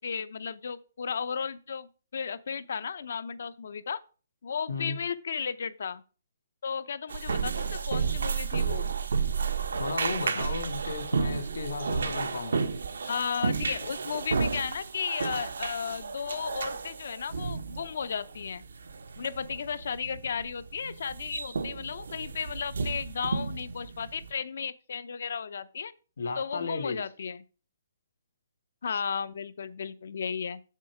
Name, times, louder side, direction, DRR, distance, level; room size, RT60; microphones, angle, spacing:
voice 1, 0.0-4.0 4.4-6.0 6.6-8.9 13.0-18.6 19.2-25.9 26.4-27.4 28.8-30.6, left 6 dB, 55° left, 0.7 m, -34 dB
sound 1, 7.1-24.3, right 5 dB, 80° right, 1.2 m, -32 dB
voice 2, 9.8-12.7 26.2-27.0, left 3 dB, 75° left, 2.5 m, -34 dB
7.5 x 7.3 x 4.8 m
hypercardioid pair, 175°, 0 cm